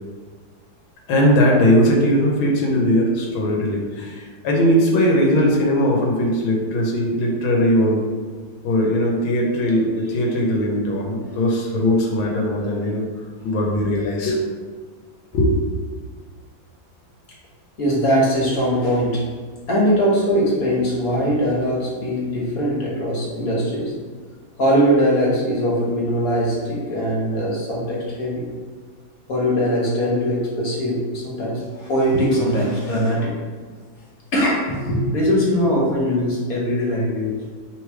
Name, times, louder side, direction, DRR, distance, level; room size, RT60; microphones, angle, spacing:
voice 1, 1.1-8.0 8.6-13.0 13.4-14.5 15.3-15.5, equal, 85° left, -1 dB, 1.6 m, -19 dB
voice 2, 17.8-19.3 19.7-23.9 24.6-28.5 29.3-33.3 34.3-37.5, equal, 50° left, -5 dB, 1.6 m, -21 dB
3.4 x 3.2 x 4.6 m, 1.5 s
omnidirectional pair, 2.1 m